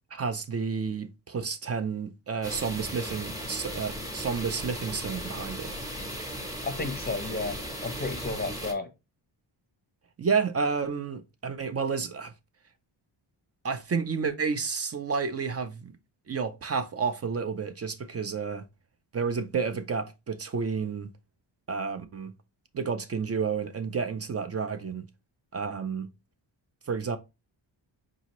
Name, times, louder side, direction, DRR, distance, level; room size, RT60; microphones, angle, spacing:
voice 1, 0.1-5.7 10.2-12.3 13.6-15.9 16.3-18.6 19.1-21.1 21.7-22.3 22.7-25.1 25.5-26.1 26.9-27.2, right 5 dB, 35° right, 0.4 m, -30 dB
sound 1, 2.4-8.7, equal, 10° right, 0.9 m, -37 dB
voice 2, 6.6-7.6 7.8-8.9, left 3 dB, 20° left, 0.6 m, -32 dB
4.9 x 2.7 x 2.9 m
wide cardioid pair, 155°, 48 cm